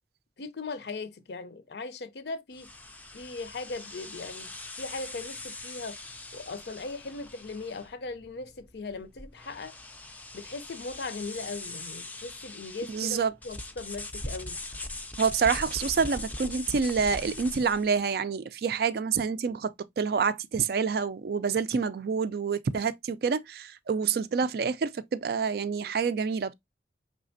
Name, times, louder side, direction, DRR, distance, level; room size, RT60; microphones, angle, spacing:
voice 1, 0.4-2.7 3.1-4.5 4.8-6.0 6.3-9.7 10.3-13.2 13.4-14.6, left 3 dB, 65° left, 0.5 m, -38 dB
sound 1, 2.5-17.9, left 2 dB, 10° left, 0.4 m, -41 dB
voice 2, 12.9-13.3 15.2-26.5, right 5 dB, 60° right, 0.3 m, -27 dB
4.9 x 3.3 x 2.5 m
head